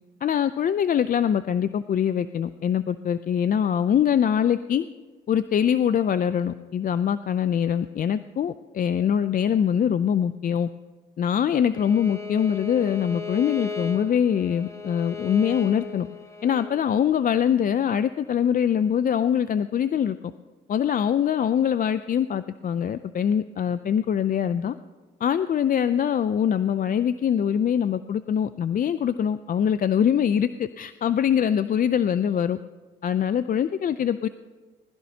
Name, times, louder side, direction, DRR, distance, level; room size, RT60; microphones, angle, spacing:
voice 1, 0.2-4.9 5.3-10.7 11.2-16.1 16.4-20.2 20.7-24.7 25.2-32.6 33.0-34.3, left 8 dB, 45° left, 12 dB, 0.5 m, -23 dB
Bowed string instrument, 11.7-16.7, left 4 dB, 15° left, 1.4 m, -36 dB
20.5 x 14.5 x 2.9 m, 1.3 s
cardioid pair, 90°, 20 cm